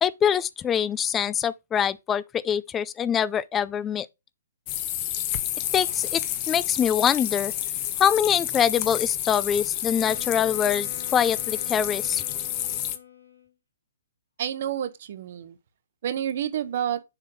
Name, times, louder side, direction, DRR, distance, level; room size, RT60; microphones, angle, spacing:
voice 1, 0.0-4.1 5.7-6.2 6.5-7.5 8.0-12.2, left 8 dB, 15° left, 0.4 m, -24 dB
sound 1, 4.7-13.0, left 12 dB, 35° left, 0.9 m, -30 dB
Wind instrument woodwind instrument, 10.0-13.5, left 9 dB, 65° left, 2.8 m, -45 dB
voice 2, 14.4-15.6 16.0-17.0, right 10 dB, 55° right, 1.0 m, -29 dB
7.1 x 3.8 x 5.3 m
hypercardioid pair, 130°, 0 cm